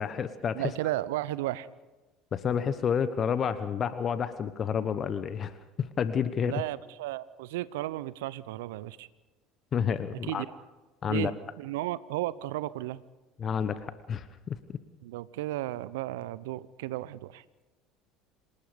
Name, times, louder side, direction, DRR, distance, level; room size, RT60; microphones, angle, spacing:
voice 1, 0.0-0.6 2.3-5.5 5.8-6.5 9.7-10.4 11.0-11.3 13.4-14.6, left 7 dB, 40° left, 13 dB, 1.1 m, -29 dB
voice 2, 0.5-1.7 6.4-9.1 10.1-10.5 11.1-13.0 15.0-17.4, right 15 dB, 75° right, 19 dB, 0.8 m, -34 dB
27.0 x 18.5 x 5.2 m, 1.1 s
hypercardioid pair, 70°, 0 cm